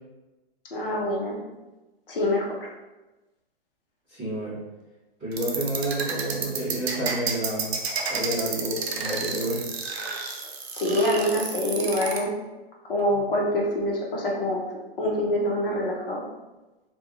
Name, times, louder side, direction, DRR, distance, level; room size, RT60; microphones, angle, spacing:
voice 1, 0.7-1.4 2.1-2.7 10.7-12.3 12.8-14.6 15.0-16.2, left 1 dB, 65° left, -2 dB, 0.7 m, -25 dB
voice 2, 4.1-4.5 5.2-7.7 8.1-9.7 13.1-13.2, right 1 dB, 5° right, -19 dB, 0.6 m, -29 dB
sound 1, 5.3-12.2, right 5 dB, 80° right, 0.6 m, -30 dB
2.9 x 2.2 x 2.3 m, 1.1 s
hypercardioid pair, 180°, 31 cm